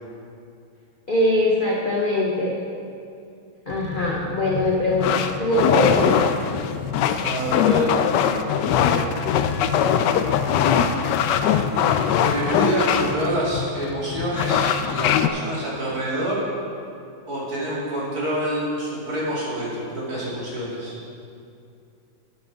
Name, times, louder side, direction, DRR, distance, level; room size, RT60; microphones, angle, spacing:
voice 1, 1.1-2.6 3.7-6.1, left 1 dB, 45° left, -3 dB, 0.7 m, -22 dB
sound 1, 3.7-15.3, left 8 dB, 75° left, 1.0 m, -22 dB
voice 2, 7.2-8.0 8.5-9.0 10.4-11.1 12.2-16.4 17.3-20.9, equal, 45° right, -6 dB, 2.9 m, -27 dB
12.0 x 8.7 x 3.9 m, 2.5 s
omnidirectional pair, 2.3 m